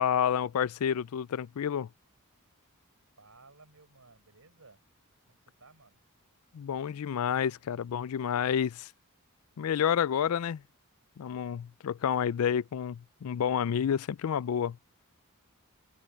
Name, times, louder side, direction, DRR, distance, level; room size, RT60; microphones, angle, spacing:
voice 1, 0.0-1.9 6.5-8.9 9.6-10.6 11.2-14.8, left 8 dB, 70° left, 0.4 m, -29 dB
voice 2, 3.2-4.8 5.3-6.0, right 3 dB, 70° right, 4.7 m, -58 dB
open air
head